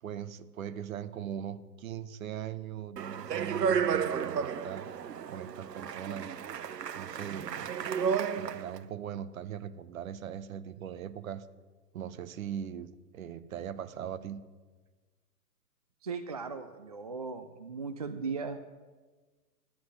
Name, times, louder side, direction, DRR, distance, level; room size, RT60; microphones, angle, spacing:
voice 1, 0.0-4.9 5.3-6.3 6.9-7.8 8.3-11.5 11.9-14.4, right 9 dB, 55° right, 14 dB, 1.1 m, -40 dB
Speech, 3.0-8.8, right 7 dB, 80° right, 0.8 m, -32 dB
voice 2, 16.0-18.6, right 4 dB, 25° right, 9 dB, 0.4 m, -37 dB
10.5 x 7.9 x 9.4 m, 1.3 s
hypercardioid pair, 130°, 48 cm